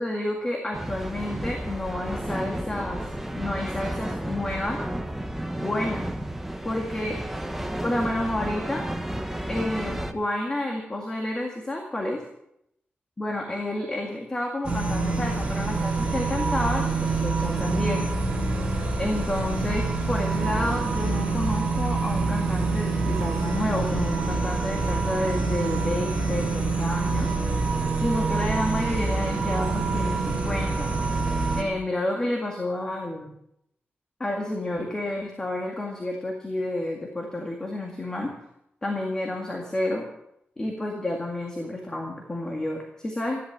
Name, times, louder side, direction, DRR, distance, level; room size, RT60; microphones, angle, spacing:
voice 1, 0.0-3.0 3.3-4.8 5.6-6.0 6.6-7.2 7.8-8.9 9.5-12.2 13.2-18.1 19.0-27.3 28.0-30.9 31.6-33.3 34.2-38.3 38.8-40.1 40.6-43.4, left 1 dB, 20° left, 1 dB, 2.0 m, -30 dB
sound 1, 0.7-10.1, right 1 dB, 5° right, 1.1 m, -32 dB
sound 2, 14.6-31.6, right 3 dB, 25° right, 3.6 m, -26 dB
14.0 x 12.0 x 7.3 m, 0.79 s
wide cardioid pair, 175°, 4 cm